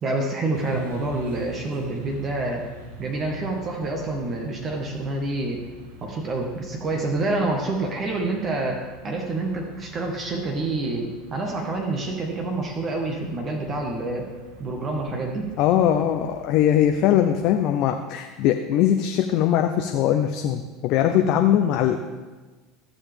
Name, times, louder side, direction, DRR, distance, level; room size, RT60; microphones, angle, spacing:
voice 1, 0.0-2.6 3.0-5.6 6.0-14.3 14.6-15.5, right 2 dB, 35° right, 2 dB, 1.4 m, -27 dB
sound 1, 0.5-17.5, equal, 70° right, 1.2 m, -45 dB
voice 2, 15.6-22.0, left 10 dB, 55° left, 6 dB, 0.6 m, -21 dB
14.5 x 7.0 x 3.5 m, 1.3 s
figure-of-eight pair, 75°, 0 cm